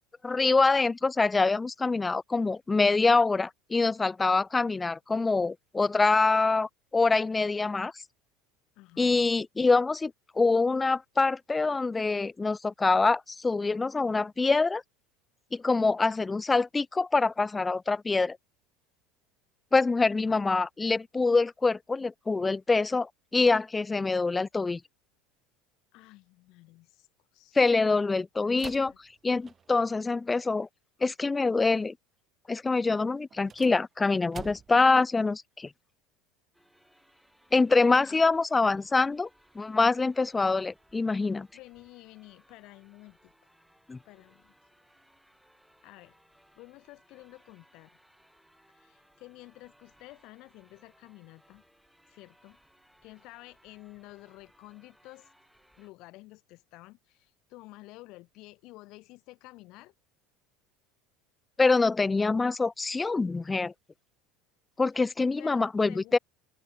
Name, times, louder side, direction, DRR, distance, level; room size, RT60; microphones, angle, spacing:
voice 1, 0.2-7.9 9.0-14.8 15.5-18.4 19.7-24.8 27.5-28.9 29.2-30.7 31.0-31.9 32.5-35.7 37.5-39.3 39.6-41.5 43.9-44.0 61.6-63.7 64.8-66.2, left 3 dB, 15° left, 0.3 m, -25 dB
voice 2, 8.8-9.4 20.3-20.4 25.9-27.1 27.3-27.6 28.4-29.0 38.0-38.2 41.3-43.3 44.0-44.5 45.8-46.2 46.5-48.0 48.7-51.6 52.1-52.6 53.0-55.3 55.8-59.9 65.4-66.2, left 21 dB, 60° left, 2.7 m, -51 dB
sound 1, 28.5-29.9 33.3-34.9, right 6 dB, 30° right, 1.6 m, -47 dB
sound 2, 36.5-55.9, equal, ahead, 6.5 m, -64 dB
hypercardioid pair, 90°, 0 cm